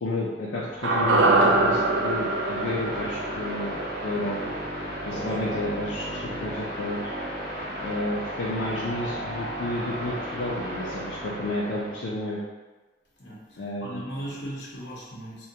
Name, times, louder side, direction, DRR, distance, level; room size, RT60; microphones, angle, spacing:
voice 1, 0.0-4.5 5.0-7.1 7.8-12.4 13.6-14.3, left 2 dB, 80° left, -5 dB, 0.4 m, -31 dB
sound 1, 0.6-12.1, equal, 55° right, 0.8 m, -34 dB
sound 2, 0.8-5.1 5.4-5.5, right 2 dB, 75° right, 0.3 m, -24 dB
voice 2, 13.2-15.5, equal, 60° left, -5 dB, 0.9 m, -38 dB
3.5 x 2.3 x 2.7 m, 1.2 s
head